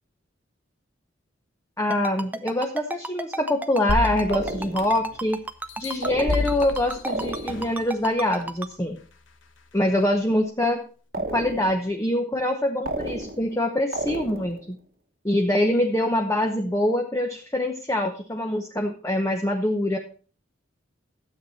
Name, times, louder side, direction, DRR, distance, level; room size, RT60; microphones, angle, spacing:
voice 1, 1.8-5.4 5.8-9.0 9.7-10.8 11.2-14.8 15.2-20.0, left 1 dB, 15° left, 3 dB, 0.9 m, -24 dB
Ringtone, 1.9-8.7, right 2 dB, 10° right, 0.5 m, -32 dB
sound 1, 3.9-5.2 5.7-7.8 8.4-8.5, left 2 dB, 75° left, 1.2 m, -30 dB
sound 2, 4.3-5.0 6.0-6.7 7.1-7.8 11.1-11.9 12.8-13.6 13.9-14.7, right 2 dB, 50° right, 1.2 m, -32 dB
12.5 x 8.0 x 4.2 m, 0.41 s
head